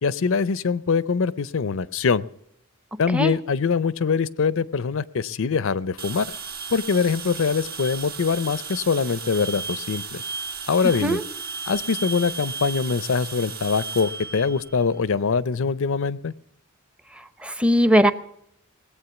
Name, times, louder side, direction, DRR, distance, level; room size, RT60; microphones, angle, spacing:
voice 1, 0.0-2.2 3.0-6.3 6.7-10.2 10.7-11.2 11.7-16.3, left 5 dB, 65° left, 18 dB, 0.5 m, -23 dB
sound 1, 6.0-15.2, right 5 dB, 45° right, 1.3 m, -35 dB
voice 2, 17.4-18.1, equal, 5° right, 12 dB, 0.8 m, -19 dB
19.5 x 8.5 x 7.0 m, 0.74 s
head